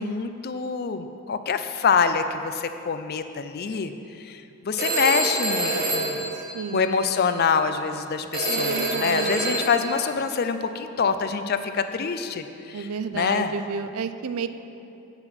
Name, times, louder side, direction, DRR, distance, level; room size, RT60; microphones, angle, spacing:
voice 1, 0.0-6.3 6.7-13.6, left 5 dB, 45° left, 9 dB, 0.4 m, -26 dB
Telephone, 4.8-7.1 8.3-10.1, right 2 dB, 40° right, 1.2 m, -27 dB
voice 2, 6.5-7.0 8.5-9.5 12.7-14.5, right 6 dB, 80° right, 11 dB, 0.4 m, -32 dB
8.9 x 5.8 x 6.0 m, 2.7 s
head